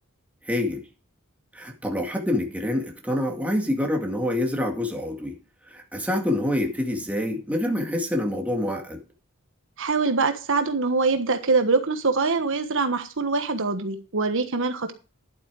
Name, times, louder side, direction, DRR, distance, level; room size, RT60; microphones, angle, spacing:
voice 1, 0.5-0.8 1.5-5.4 5.7-9.0, left 1 dB, 5° right, 2 dB, 2.1 m, -26 dB
voice 2, 9.8-14.9, right 4 dB, 60° right, 8 dB, 1.3 m, -24 dB
11.5 x 8.4 x 4.8 m, 0.34 s
head